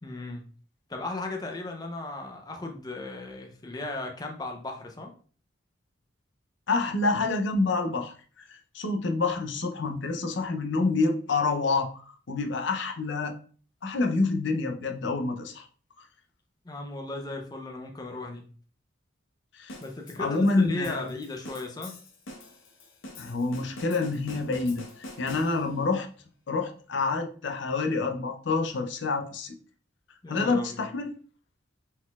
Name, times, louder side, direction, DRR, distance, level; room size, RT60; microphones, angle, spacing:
voice 1, 0.0-0.4 0.9-5.1 16.6-18.4 19.8-21.9 30.2-30.8, left 2 dB, 20° left, 2 dB, 0.5 m, -36 dB
voice 2, 6.7-13.3 13.8-15.7 19.5-19.8 20.2-21.1 23.2-26.1 26.5-29.5 30.3-31.1, left 3 dB, 65° left, 5 dB, 0.6 m, -27 dB
sound 1, 19.7-25.9, left 1 dB, 85° left, 1.0 m, -45 dB
4.2 x 3.9 x 2.3 m, 0.41 s
head